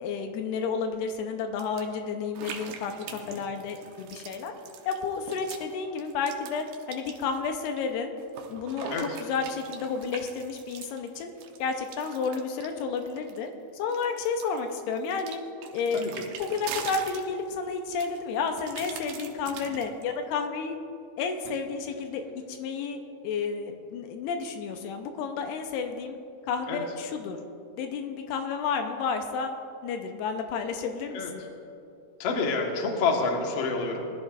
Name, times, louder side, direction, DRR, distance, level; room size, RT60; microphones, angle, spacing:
voice 1, 0.0-4.5 4.9-8.1 8.5-8.9 9.2-11.3 11.6-15.4 15.7-16.0 16.4-20.8 21.2-22.2 22.5-26.2 26.4-27.4 27.8-29.5 29.8-31.2, left 5 dB, 85° left, 5 dB, 2.8 m, -31 dB
sound 1, 1.6-1.8 2.4-5.7 6.0-7.8 8.2-13.5 13.9-17.6 18.0-20.0, right 8 dB, 90° right, 3.1 m, -42 dB
voice 2, 3.1-3.4 8.9-9.2 15.9-16.2 19.6-19.7 26.7-26.8 31.1-31.5 32.2-34.0, left 4 dB, 60° left, 1 dB, 1.7 m, -29 dB
21.5 x 13.5 x 2.5 m, 2.5 s
omnidirectional pair, 4.7 m